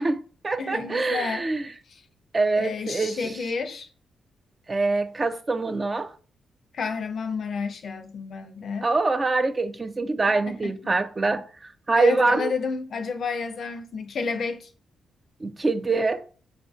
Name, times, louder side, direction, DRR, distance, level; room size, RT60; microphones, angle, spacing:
voice 1, 0.0-1.6 2.3-3.2 4.7-6.1 8.8-11.5 11.9-12.5 15.4-16.2, right 3 dB, 30° right, 0.4 m, -24 dB
voice 2, 0.6-1.5 1.9-2.0 2.6-3.9 6.7-8.9 10.5-10.9 11.9-14.7, left 5 dB, 65° left, 0.5 m, -31 dB
4.2 x 2.5 x 2.3 m
cardioid pair, 65°, 0 cm